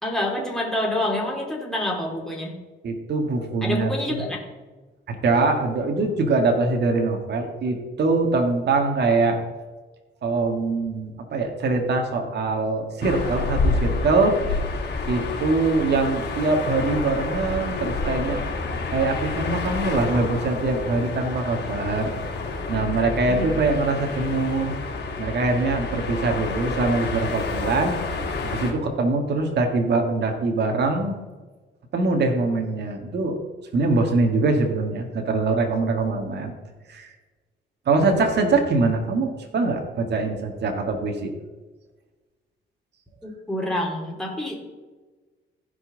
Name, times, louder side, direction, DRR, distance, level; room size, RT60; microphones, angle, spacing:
voice 1, 0.0-2.6 3.6-4.4 23.3-24.0 43.2-44.6, left 1 dB, 5° left, -2 dB, 3.0 m, -27 dB
voice 2, 2.8-4.3 5.1-9.4 10.2-14.3 15.1-18.4 18.9-22.2 22.7-24.8 25.2-28.0 28.4-31.2 31.9-33.4 33.7-36.5 36.9-37.1 37.9-41.3, right 3 dB, 60° right, 3 dB, 1.8 m, -23 dB
sound 1, 13.0-28.7, left 3 dB, 60° left, 2.7 m, -29 dB
15.5 x 5.4 x 3.9 m, 1.2 s
cardioid pair, 90°, 20 cm